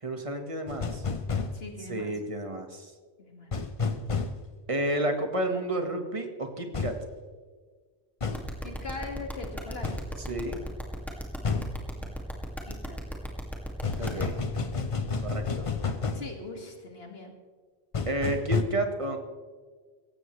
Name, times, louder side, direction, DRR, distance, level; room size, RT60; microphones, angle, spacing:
voice 1, 0.0-1.0 1.9-2.9 4.7-7.0 10.3-10.6 14.0-14.4 15.2-15.7 18.1-19.2, right 1 dB, 30° right, 5 dB, 1.6 m, -31 dB
sound 1, 0.7-1.5 3.5-4.3 6.7-7.0 8.2-8.4 9.8-10.0 11.4-11.7 13.8-16.3 17.9-18.6, left 4 dB, 35° left, 0.8 m, -30 dB
voice 2, 1.5-2.1 3.2-3.5 8.6-10.1 12.0-12.4 12.6-13.0 16.1-17.3, left 3 dB, 70° left, 3 dB, 2.3 m, -41 dB
sound 2, 8.3-14.2, equal, ahead, 2.2 m, -36 dB
17.5 x 15.0 x 3.3 m, 1.5 s
omnidirectional pair, 1.1 m